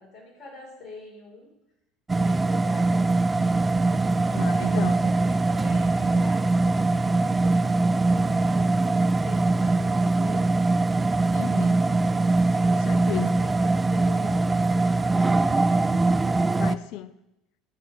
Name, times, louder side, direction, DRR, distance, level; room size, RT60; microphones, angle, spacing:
voice 1, 0.0-1.5 2.1-3.3 4.4-9.0 9.2-10.5 12.0-12.8 13.4-15.7, left 3 dB, 40° left, 5.0 m, -45 dB
sound 1, 2.1-16.8, right 3 dB, 15° right, 0.5 m, -22 dB
voice 2, 4.3-5.0 11.3-11.8 12.7-13.4 16.6-17.1, left 12 dB, 60° left, 0.6 m, -34 dB
23.0 x 7.7 x 3.6 m
hypercardioid pair, 70°, 0 cm